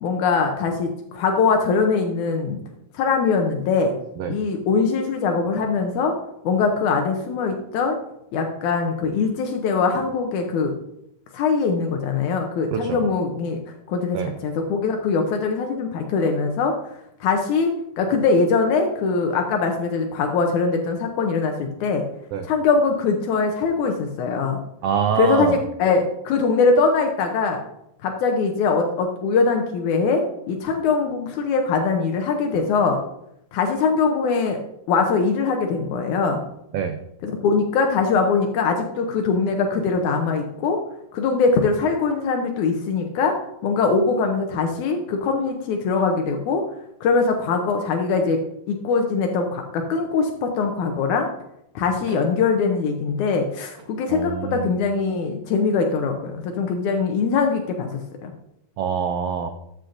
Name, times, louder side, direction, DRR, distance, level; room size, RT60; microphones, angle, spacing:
voice 1, 0.0-2.6 2.9-3.9 4.3-6.1 6.5-8.0 8.3-10.7 11.3-13.6 13.9-16.7 17.2-17.7 18.0-22.0 22.4-24.6 25.2-27.6 28.0-30.2 30.5-33.0 33.5-34.6 34.9-36.4 37.2-40.8 41.1-43.3 43.6-46.6 47.0-48.4 48.7-51.3 51.8-58.3, left 4 dB, 80° left, 3 dB, 2.3 m, -22 dB
voice 2, 12.7-13.0 14.1-14.3 22.3-22.5 24.8-25.6 36.7-37.0 52.1-52.2 54.1-54.7 58.8-59.5, right 7 dB, 85° right, 7 dB, 1.3 m, -25 dB
13.0 x 7.2 x 2.6 m, 0.78 s
omnidirectional pair, 3.4 m